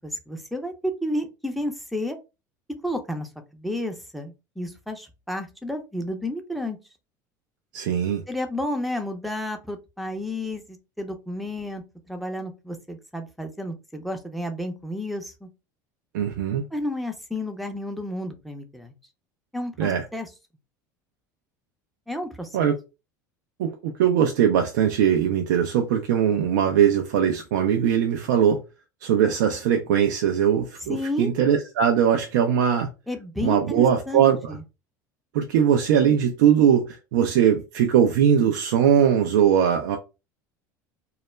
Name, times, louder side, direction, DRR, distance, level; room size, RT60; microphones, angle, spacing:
voice 1, 0.0-2.2 2.8-6.8 8.3-15.5 16.7-18.9 19.5-20.3 22.1-22.7 30.9-31.3 33.1-34.6, left 1 dB, ahead, 0.6 m, -31 dB
voice 2, 7.7-8.2 16.1-16.6 19.8-20.0 22.5-22.8 23.6-28.6 29.0-32.9 33.4-34.6 35.3-40.0, right 8 dB, 75° right, 0.4 m, -20 dB
2.3 x 2.1 x 3.1 m
hypercardioid pair, 80°, 10 cm